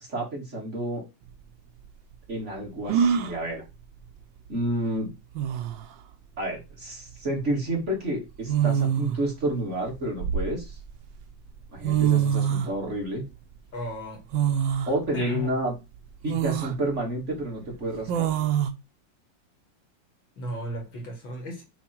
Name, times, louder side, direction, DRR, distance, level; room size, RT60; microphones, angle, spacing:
voice 1, 0.1-1.0 2.3-3.6 4.5-5.1 6.4-10.8 11.7-13.3 14.9-15.7 16.2-18.3, right 1 dB, 35° right, 2.7 m, -30 dB
sound 1, 1.3-1.4 2.9-3.4 4.9-5.0 5.4-5.8 7.2-7.4 8.5-9.2 9.9-10.9 11.6-11.7 11.8-12.7 14.3-14.9 15.4-15.5 16.3-16.8 18.1-18.7, right 9 dB, 75° right, 1.4 m, -24 dB
voice 2, 13.7-14.2 15.1-15.6 20.4-21.6, left 1 dB, 75° left, 3.1 m, -34 dB
7.4 x 3.5 x 4.6 m
omnidirectional pair, 2.1 m